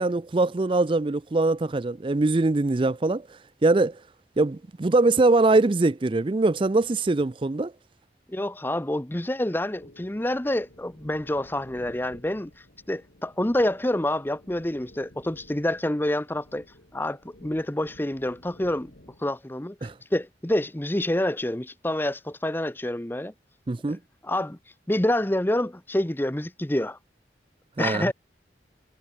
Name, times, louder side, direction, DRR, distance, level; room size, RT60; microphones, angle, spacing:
voice 1, 0.0-3.3 3.6-4.0 4.4-7.7 19.8-19.9 23.7-24.0 27.8-28.1, right 2 dB, 30° right, 0.4 m, -22 dB
voice 2, 8.3-12.5 12.9-16.6 16.9-18.9 19.2-19.8 20.1-23.3 23.9-24.0 24.2-24.6 24.9-27.0 27.8-28.1, left 1 dB, 10° left, 0.7 m, -27 dB
sound 1, 9.6-19.3, left 1 dB, 75° left, 3.4 m, -53 dB
head